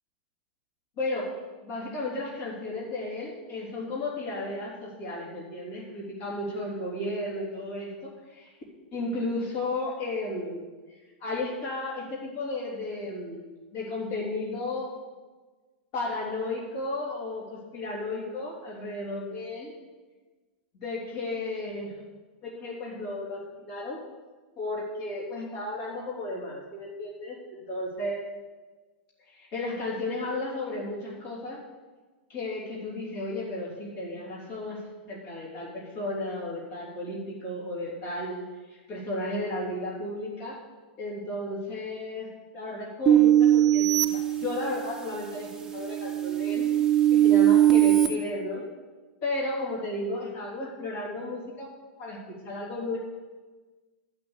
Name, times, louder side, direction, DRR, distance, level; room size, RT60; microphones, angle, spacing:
voice 1, 1.0-1.3 1.6-8.5 8.9-10.7 11.2-13.4 13.7-15.0 15.9-19.7 20.7-21.9 22.4-24.0 24.6-28.2 29.3-31.6 32.3-40.6 41.0-42.3 42.5-46.7 47.1-48.6 49.2-51.7 52.0-53.0, left 2 dB, 40° left, -6 dB, 3.4 m, -34 dB
sound 1, 43.1-45.0 45.5-48.1, right 12 dB, 5° right, 0.8 m, -21 dB
11.5 x 6.0 x 8.0 m, 1.3 s
supercardioid pair, 165°, 6 cm